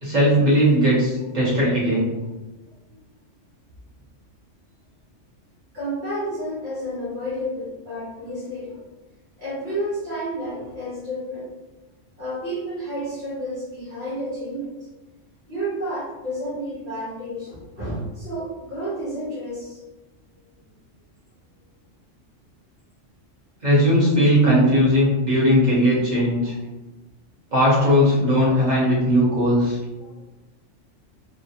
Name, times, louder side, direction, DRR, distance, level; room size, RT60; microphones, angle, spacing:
voice 1, 0.0-2.1 23.6-26.5 27.5-29.8, equal, 35° right, -7 dB, 1.1 m, -18 dB
voice 2, 5.7-8.8 9.4-11.5 12.2-14.7 15.5-19.8 29.4-29.5 30.0-30.2, equal, 55° right, -10 dB, 1.4 m, -31 dB
3.3 x 2.1 x 2.8 m, 1.1 s
omnidirectional pair, 1.3 m